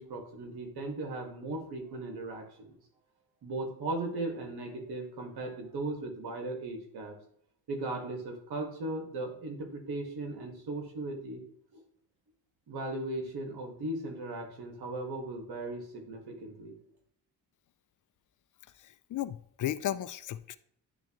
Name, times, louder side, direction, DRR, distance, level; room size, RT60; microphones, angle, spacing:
voice 1, 0.0-2.7 3.4-7.1 7.7-11.4 11.7-11.8 12.7-16.8, right 2 dB, 65° right, 2 dB, 1.9 m, -37 dB
voice 2, 18.8-20.6, left 12 dB, 50° left, 15 dB, 0.4 m, -35 dB
10.0 x 3.5 x 3.0 m, 0.66 s
cardioid pair, 70°, 40 cm